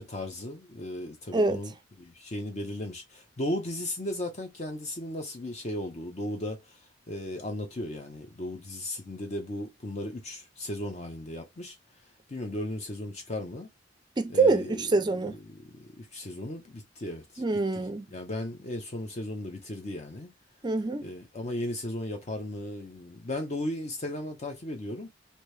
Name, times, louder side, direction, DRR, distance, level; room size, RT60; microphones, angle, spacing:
voice 1, 0.0-6.8 7.1-11.8 12.3-13.7 14.3-15.0 15.3-17.4 17.7-17.8 18.1-20.3 21.0-25.1, left 1 dB, 40° left, 0.7 m, -36 dB
voice 2, 14.2-15.4 17.4-18.1 20.6-21.1, right 3 dB, 25° right, 0.4 m, -25 dB
3.0 x 2.7 x 3.2 m
head